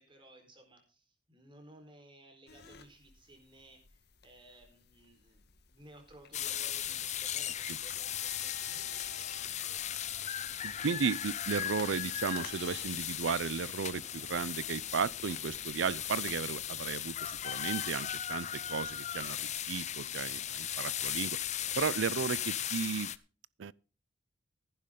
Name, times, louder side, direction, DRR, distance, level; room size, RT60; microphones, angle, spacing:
voice 1, 0.0-5.4 5.7-10.9 11.9-12.1 20.3-21.0, right 1 dB, 25° right, 4.3 m, -58 dB
sound 1, 2.5-21.8, left 6 dB, 60° left, 1.5 m, -55 dB
sound 2, 6.3-23.2, left 10 dB, 40° left, 0.6 m, -37 dB
voice 2, 10.6-21.4 21.8-23.1 23.6-23.7, right 6 dB, 75° right, 0.5 m, -34 dB
Hiss, 11.6-17.4, left 2 dB, 10° left, 2.2 m, -59 dB
15.0 x 11.0 x 3.8 m
head